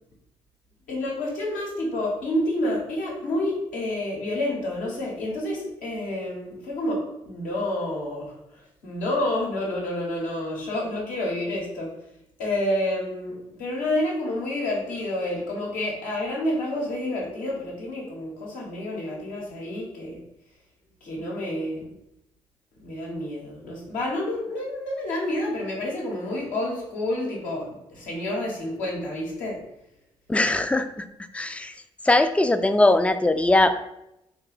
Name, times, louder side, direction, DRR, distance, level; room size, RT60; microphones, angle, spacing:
voice 1, 0.9-8.3 8.8-11.9 12.4-20.2 21.0-21.9 22.8-29.6, left 1 dB, 75° left, -2 dB, 1.0 m, -29 dB
voice 2, 30.3-30.9 31.3-31.7 32.0-33.7, left 2 dB, 10° left, 9 dB, 0.3 m, -20 dB
3.2 x 2.2 x 3.9 m, 0.84 s
hypercardioid pair, 40°, 14 cm